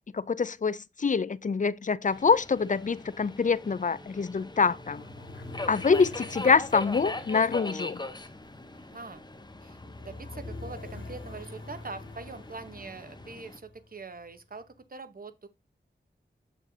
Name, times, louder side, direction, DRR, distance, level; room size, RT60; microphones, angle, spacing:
voice 1, 0.1-5.0 5.7-8.0, left 5 dB, 40° left, 0.5 m, -25 dB
Subway metro underground, 2.1-13.6, left 2 dB, 20° left, 0.9 m, -41 dB
sound 1, 4.4-14.4, left 2 dB, 85° left, 2.2 m, -46 dB
voice 2, 8.7-9.2 9.6-15.5, right 4 dB, 45° right, 1.0 m, -43 dB
7.3 x 6.7 x 2.7 m
wide cardioid pair, 70°, 20 cm